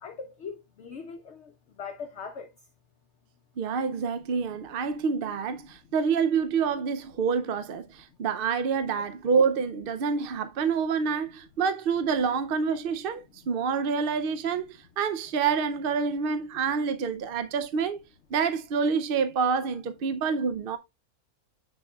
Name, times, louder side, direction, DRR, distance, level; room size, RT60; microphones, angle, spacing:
voice 1, 0.0-2.5, left 5 dB, 60° left, 0.9 m, -40 dB
voice 2, 3.6-18.0 18.3-20.8, right 5 dB, 65° right, 0.5 m, -27 dB
7.2 x 6.2 x 2.2 m
omnidirectional pair, 1.6 m